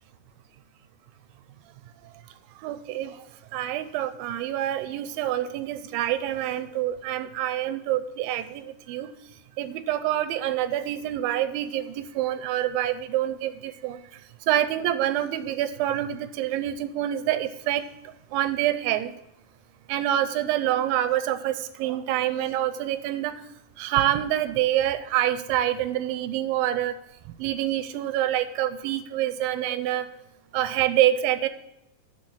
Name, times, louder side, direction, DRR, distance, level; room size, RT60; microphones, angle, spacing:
voice 1, 2.6-3.2 3.5-9.1 9.6-14.0 14.5-17.9 18.3-19.1 19.9-23.4 23.8-27.0 27.4-30.1 30.5-31.5, right 12 dB, 80° right, 12 dB, 2.2 m, -26 dB
12.0 x 4.4 x 6.2 m, 0.86 s
omnidirectional pair, 4.4 m